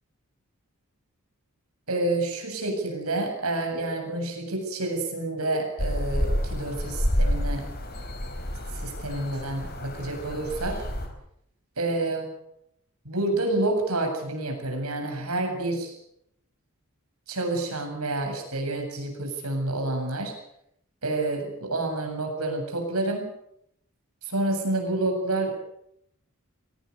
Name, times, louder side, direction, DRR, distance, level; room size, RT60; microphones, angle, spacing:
voice 1, 1.9-7.6 8.7-10.8 11.8-12.3 13.0-15.9 17.3-20.4 21.0-23.3 24.2-25.6, right 2 dB, 80° right, 4 dB, 7.7 m, -28 dB
sound 1, 5.8-11.1, equal, 45° left, 4.7 m, -29 dB
23.5 x 18.5 x 8.2 m, 0.75 s
head